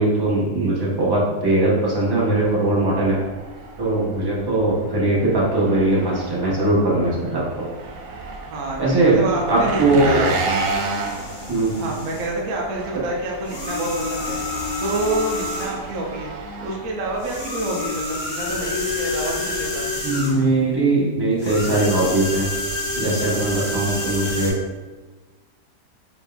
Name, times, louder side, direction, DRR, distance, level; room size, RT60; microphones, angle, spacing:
voice 1, 0.0-3.2 3.8-7.7 8.8-9.2 9.5-10.2 11.5-11.7 20.0-22.5 23.0-24.6, right 2 dB, 30° right, -6 dB, 0.4 m, -20 dB
Engine, 1.8-17.6, right 3 dB, 80° right, 0.6 m, -32 dB
voice 2, 8.5-10.7 11.7-14.4 14.8-16.3 16.6-19.9, right 2 dB, 65° right, -2 dB, 1.0 m, -28 dB
sound 1, 10.2-12.4 13.4-15.9 17.2-20.5 21.4-24.5, left 2 dB, 55° left, 1.5 m, -28 dB
4.0 x 3.5 x 2.3 m, 1.2 s
omnidirectional pair, 1.8 m